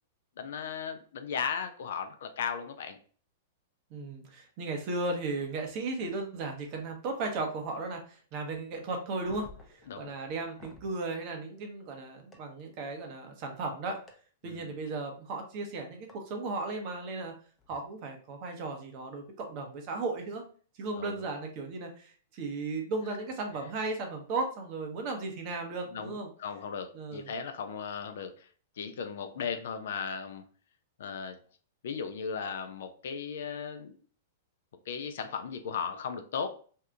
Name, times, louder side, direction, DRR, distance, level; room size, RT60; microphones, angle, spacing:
voice 1, 0.4-3.0 9.9-10.1 14.4-14.7 21.0-21.1 25.9-28.5 28.8-30.4 31.0-31.4 31.8-34.0 34.9-36.5, left 6 dB, 70° left, 8 dB, 0.4 m, -36 dB
voice 2, 3.9-9.5 10.0-14.0 14.4-17.3 17.7-20.4 20.7-26.3 26.9-27.3, right 3 dB, 45° right, 3 dB, 0.9 m, -35 dB
sound 1, 9.2-10.9 12.3-12.4 14.1-14.2 16.1-16.2 17.6-17.8, left 3 dB, 15° left, 0.6 m, -52 dB
2.7 x 2.4 x 3.4 m, 0.43 s
hypercardioid pair, 115°, 0 cm